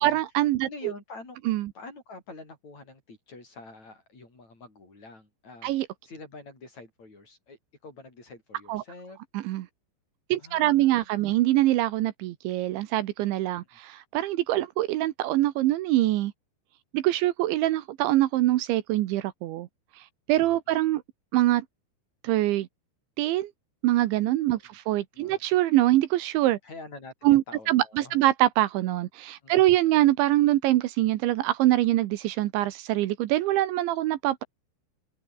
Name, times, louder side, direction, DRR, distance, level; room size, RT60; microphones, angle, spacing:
voice 1, 0.0-0.7 1.5-1.7 5.6-5.9 8.7-8.8 9.3-9.7 10.3-16.3 16.9-19.7 20.3-21.0 21.3-21.6 22.2-22.7 23.2-23.5 23.8-26.6 27.2-34.4, right 15 dB, 75° right, 3.3 m, -24 dB
voice 2, 0.6-1.4 1.8-5.7 6.0-9.2 10.4-11.4 13.7-13.8 20.5-20.8 24.6-24.7 25.1-25.4 26.6-28.3 29.4-29.8, left 3 dB, 35° left, 8.6 m, -46 dB
open air
omnidirectional pair, 5.5 m